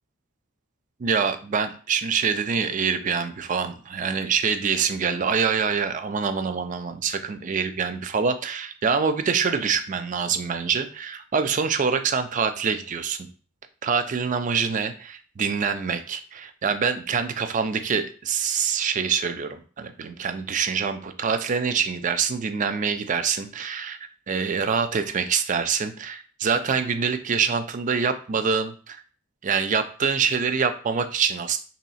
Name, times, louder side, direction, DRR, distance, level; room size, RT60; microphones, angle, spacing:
voice 1, 1.0-13.3 13.8-24.0 24.3-29.0 29.4-31.6, right 6 dB, 35° right, 9 dB, 0.4 m, -25 dB
3.1 x 2.8 x 4.0 m, 0.40 s
head